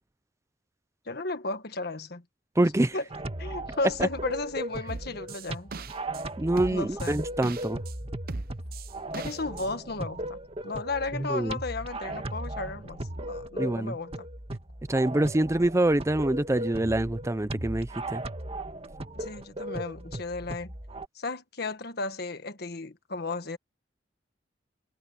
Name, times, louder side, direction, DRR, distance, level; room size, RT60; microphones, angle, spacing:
voice 1, 1.1-2.2 2.9-3.0 3.4-5.7 6.7-7.3 9.1-10.4 10.6-14.2 19.2-20.7 21.1-23.6, left 3 dB, 60° left, 1.6 m, -34 dB
voice 2, 2.6-2.9 4.0-4.1 6.4-7.8 11.1-11.6 13.6-14.0 14.9-18.2, right 1 dB, 15° right, 0.5 m, -25 dB
sound 1, 3.1-21.0, right 1 dB, 30° right, 1.8 m, -37 dB
sound 2, 4.9-6.2 6.6-7.9 8.3-9.7, right 4 dB, 55° right, 0.8 m, -39 dB
head